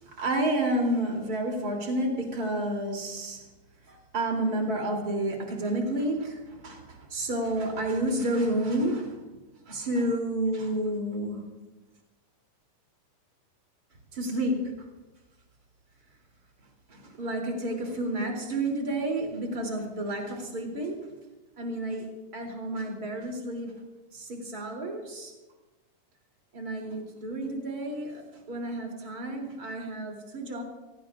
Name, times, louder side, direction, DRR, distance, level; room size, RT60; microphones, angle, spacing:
voice 1, 0.2-3.4 3.9-9.1 9.6-11.4 14.1-14.6 16.9-21.0 21.6-22.1 22.3-23.7 24.1-25.3 26.5-28.2 28.5-30.6, right 1 dB, 25° right, 1 dB, 3.4 m, -30 dB
27.0 x 18.0 x 2.5 m, 1.1 s
omnidirectional pair, 3.8 m